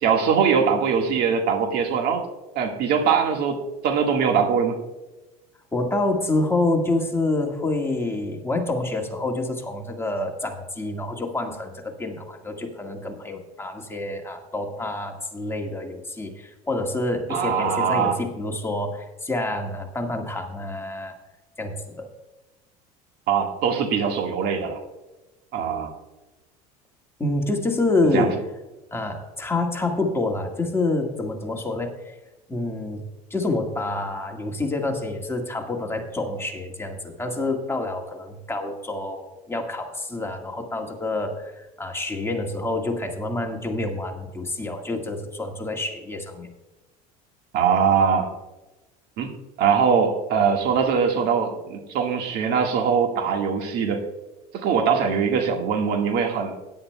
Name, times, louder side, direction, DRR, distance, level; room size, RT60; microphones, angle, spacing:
voice 1, 0.0-2.3 2.6-4.8 17.3-18.2 23.3-24.8 25.5-25.9 28.1-28.3 47.5-48.3 49.2-49.3 49.6-54.0 54.5-56.6, right 6 dB, 60° right, 3 dB, 1.8 m, -22 dB
voice 2, 5.7-21.2 21.6-22.1 27.2-28.4 28.9-31.9 32.5-33.0 33.3-46.5, left 2 dB, 15° left, 2 dB, 1.9 m, -27 dB
16.5 x 10.5 x 2.3 m, 1.1 s
hypercardioid pair, 85°, 19 cm